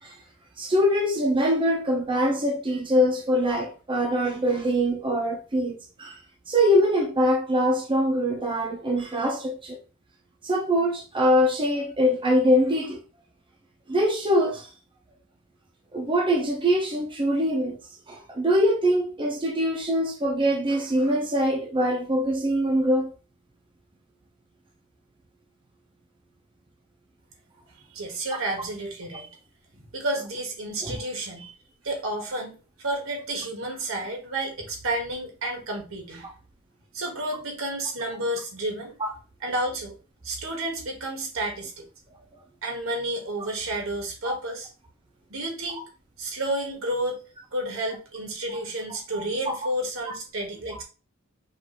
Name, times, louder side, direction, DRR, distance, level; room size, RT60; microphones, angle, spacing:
voice 1, 0.6-6.2 6.5-9.8 10.4-13.0 13.9-14.7 15.9-17.8 18.1-23.1 30.8-31.0 39.0-39.1 44.2-44.4 48.5-48.6 49.1-49.2, equal, 25° right, 0.8 m, -23 dB
voice 2, 27.9-29.4 29.7-31.5 31.8-36.3 36.9-38.9 39.4-40.0 40.2-41.9 42.6-44.7 45.3-45.8 46.2-47.2 47.5-50.8, right 1 dB, 75° right, 1.5 m, -31 dB
5.4 x 2.7 x 3.0 m
head